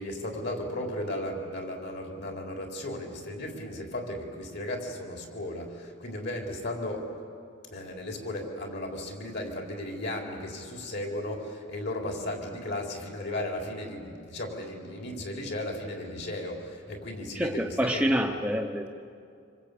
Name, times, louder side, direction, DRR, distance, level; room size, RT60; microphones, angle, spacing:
voice 1, 0.0-7.1 7.7-17.7 17.9-18.1, left 1 dB, 55° left, 2 dB, 4.3 m, -35 dB
voice 2, 17.3-18.9, equal, 5° right, 3 dB, 0.9 m, -27 dB
26.5 x 25.5 x 8.6 m, 2.4 s
head